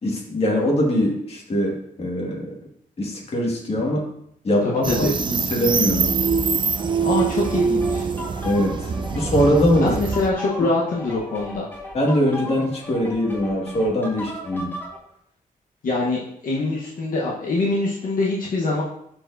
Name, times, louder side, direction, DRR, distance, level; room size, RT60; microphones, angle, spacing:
voice 1, 0.0-2.6 3.0-4.0 4.4-6.2 8.4-10.0 11.9-14.7, equal, 40° left, -1 dB, 1.8 m, -22 dB
voice 2, 4.6-5.1 7.0-8.1 9.8-11.6 15.8-18.8, left 2 dB, 65° left, -4 dB, 1.0 m, -24 dB
sound 1, 4.8-10.3, right 5 dB, 35° right, 0.4 m, -24 dB
sound 2, 7.2-15.0, left 1 dB, 15° left, 1.4 m, -37 dB
11.5 x 4.5 x 2.6 m, 0.73 s
wide cardioid pair, 125°, 15 cm